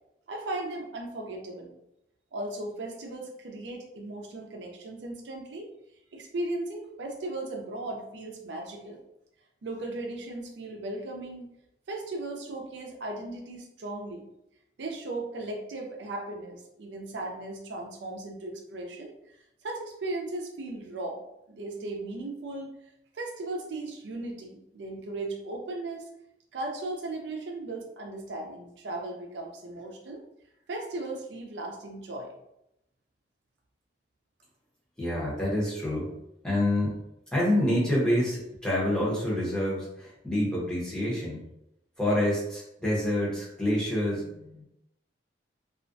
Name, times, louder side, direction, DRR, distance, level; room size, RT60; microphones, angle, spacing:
voice 1, 0.3-1.8 2.3-5.7 6.1-9.0 9.6-11.5 11.9-14.3 14.8-19.1 19.6-21.2 21.5-22.7 23.1-26.0 26.5-30.2 30.7-32.3, right 2 dB, 85° right, 1 dB, 0.5 m, -37 dB
voice 2, 35.0-36.1 36.4-37.0 37.3-41.4 42.0-44.6, left 1 dB, 5° left, -7 dB, 0.7 m, -27 dB
2.4 x 2.1 x 2.5 m, 0.82 s
head